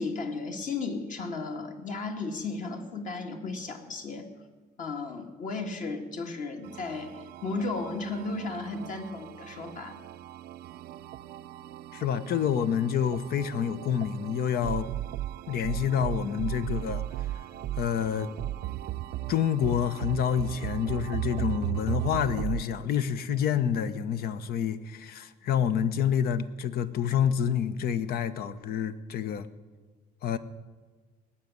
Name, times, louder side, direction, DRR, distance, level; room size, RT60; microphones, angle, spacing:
voice 1, 0.0-4.3 4.8-10.0, left 3 dB, 50° left, 4 dB, 2.0 m, -34 dB
sound 1, 6.6-22.6, right 14 dB, 70° right, 0.5 m, -36 dB
voice 2, 11.9-14.9 15.5-17.0 17.8-18.3 19.3-29.5 30.2-30.4, left 8 dB, 65° left, 13 dB, 0.9 m, -28 dB
18.5 x 7.4 x 9.5 m, 1.4 s
cardioid pair, 110°, 17 cm